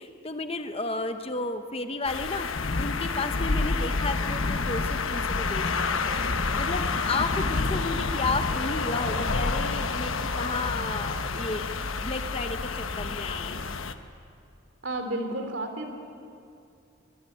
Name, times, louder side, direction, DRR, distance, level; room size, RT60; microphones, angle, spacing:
voice 1, 0.0-2.5 2.8-13.7, left 3 dB, 30° left, 7 dB, 1.0 m, -33 dB
sound 1, 2.0-13.9, left 5 dB, 80° left, 1.2 m, -30 dB
Thunderstorm, 2.3-13.9, left 2 dB, 45° left, 0.7 m, -33 dB
voice 2, 14.8-15.9, right 1 dB, 65° right, 5 dB, 3.1 m, -31 dB
23.0 x 21.5 x 8.7 m, 2.6 s
head